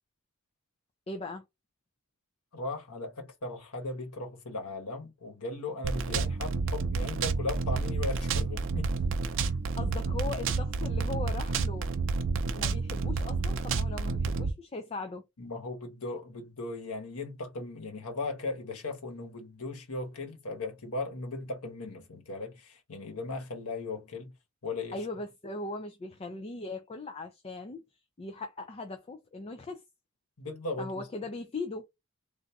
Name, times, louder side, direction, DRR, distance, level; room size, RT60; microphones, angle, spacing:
voice 1, 1.1-1.4 9.4-11.9 12.5-15.2 24.9-27.8 28.2-29.8 30.8-31.9, left 3 dB, 30° left, 0.4 m, -39 dB
voice 2, 2.5-8.9 15.4-24.3 24.6-25.1 30.4-31.1, left 2 dB, 85° left, 1.2 m, -37 dB
sound 1, 5.8-14.5, right 4 dB, 60° right, 0.5 m, -30 dB
3.5 x 2.6 x 2.7 m
head